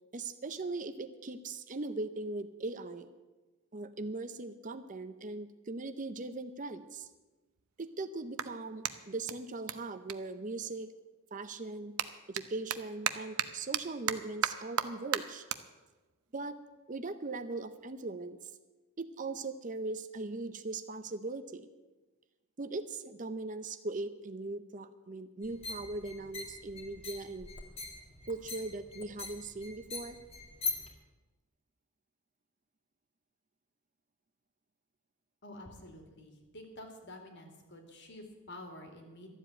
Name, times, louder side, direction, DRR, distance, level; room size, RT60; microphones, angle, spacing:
voice 1, 0.1-3.1 3.7-7.1 7.8-10.9 11.3-11.9 12.3-15.5 16.3-16.6 16.9-18.5 19.0-21.7 22.6-27.5 28.3-30.2, right 3 dB, 35° right, 11 dB, 0.6 m, -39 dB
Clapping, 6.3-6.4 7.0-11.1 11.4-18.0, right 9 dB, 80° right, 0.8 m, -39 dB
sound 1, 25.4-30.9, left 3 dB, 25° left, 2.1 m, -42 dB
voice 2, 35.4-39.3, left 1 dB, 55° left, 4 dB, 2.5 m, -49 dB
13.0 x 7.6 x 9.8 m, 1.2 s
head